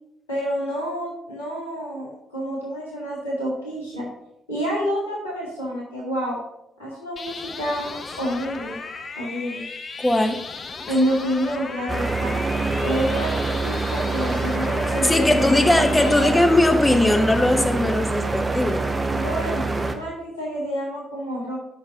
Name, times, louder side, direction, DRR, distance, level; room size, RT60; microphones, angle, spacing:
voice 1, 0.3-4.1 4.5-6.4 6.8-7.9 8.2-8.8 9.1-9.6 10.9-12.4 12.8-13.3 13.6-15.9 16.2-16.3 19.1-21.6, equal, 85° left, -6 dB, 1.9 m, -28 dB
sound 1, 7.2-16.3, left 4 dB, 40° left, 0.8 m, -36 dB
voice 2, 10.0-10.4 15.0-18.8, left 1 dB, 15° left, 5 dB, 1.1 m, -19 dB
sound 2, 11.9-19.9, right 3 dB, 25° right, 0.9 m, -25 dB
6.2 x 5.9 x 6.6 m, 0.87 s
figure-of-eight pair, 40°, 0 cm